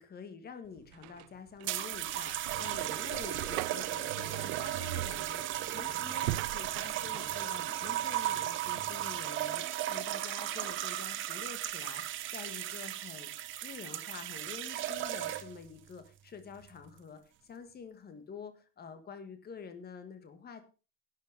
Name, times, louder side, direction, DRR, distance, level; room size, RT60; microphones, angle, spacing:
voice 1, 0.0-13.3 13.6-20.6, left 6 dB, 20° left, 9 dB, 1.7 m, -48 dB
sound 1, 0.7-7.4, right 18 dB, 85° right, 0.6 m, -41 dB
sound 2, 1.6-15.7 16.5-16.9, right 13 dB, 25° right, 0.6 m, -36 dB
11.5 x 9.1 x 5.0 m, 0.34 s
cardioid pair, 170°, 50 cm